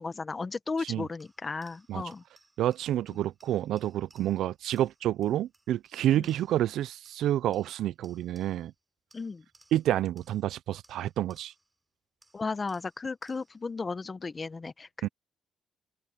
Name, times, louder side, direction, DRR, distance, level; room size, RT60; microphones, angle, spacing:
voice 1, 0.0-2.2 6.2-6.3 9.1-9.4 12.3-15.1, left 4 dB, 30° left, 0.9 m, -35 dB
sound 1, 1.2-6.7 7.0-8.8 9.1-11.8 12.2-13.7, right 2 dB, 15° right, 7.5 m, -64 dB
voice 2, 2.6-8.7 9.7-11.5 15.0-15.1, right 12 dB, 80° right, 0.3 m, -29 dB
open air
cardioid pair, 90°, 0 cm